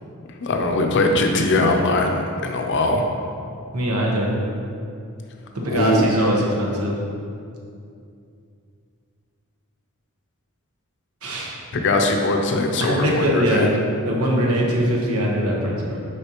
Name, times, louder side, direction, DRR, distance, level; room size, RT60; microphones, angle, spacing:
voice 1, 0.4-3.0 5.7-6.1 11.7-13.7, left 2 dB, 55° left, 3 dB, 0.6 m, -21 dB
voice 2, 3.7-4.3 5.5-6.9 11.2-11.6 12.8-13.7 14.0-16.0, equal, 80° right, -2 dB, 1.1 m, -21 dB
6.6 x 5.2 x 3.0 m, 2.5 s
head